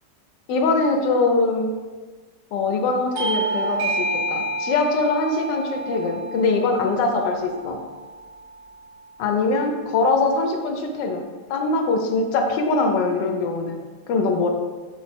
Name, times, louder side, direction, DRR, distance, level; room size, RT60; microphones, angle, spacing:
voice 1, 0.5-1.7 2.5-7.8 9.2-13.8 14.1-14.5, left 3 dB, 80° left, 3 dB, 1.3 m, -22 dB
Bell / Doorbell, 3.2-8.2, right 2 dB, 70° right, 1.0 m, -29 dB
5.0 x 2.0 x 4.2 m, 1.4 s
omnidirectional pair, 1.9 m